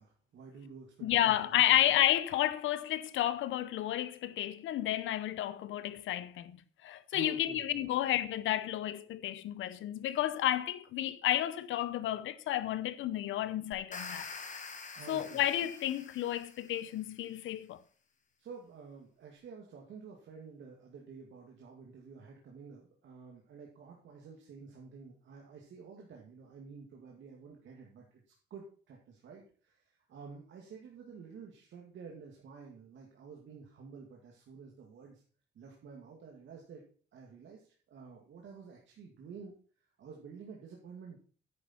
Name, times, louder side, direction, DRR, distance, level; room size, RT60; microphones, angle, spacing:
voice 1, 0.0-1.5 7.1-7.8 14.9-15.4 18.4-28.2 28.5-35.2 35.5-36.8 37.1-39.5 40.0-41.2, right 5 dB, 70° right, 2.3 m, -50 dB
voice 2, 1.0-14.3 15.1-17.8, left 13 dB, 80° left, 0.8 m, -31 dB
sound 1, 13.7-16.9, left 4 dB, 40° left, 1.8 m, -46 dB
10.0 x 10.0 x 4.4 m
cardioid pair, 90°, 20 cm